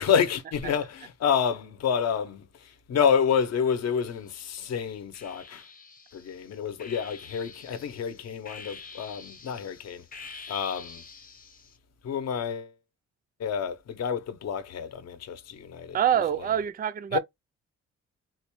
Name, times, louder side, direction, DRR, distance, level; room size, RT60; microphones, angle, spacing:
voice 1, 0.0-5.6 6.1-11.0 12.0-12.7 13.4-16.0 17.1-17.2, left 7 dB, 60° left, 0.7 m, -29 dB
sound 1, 3.8-4.5 5.1-11.8, left 4 dB, 30° left, 0.8 m, -47 dB
voice 2, 15.9-17.2, right 9 dB, 30° right, 0.4 m, -25 dB
4.0 x 2.2 x 3.0 m
wide cardioid pair, 150°, 29 cm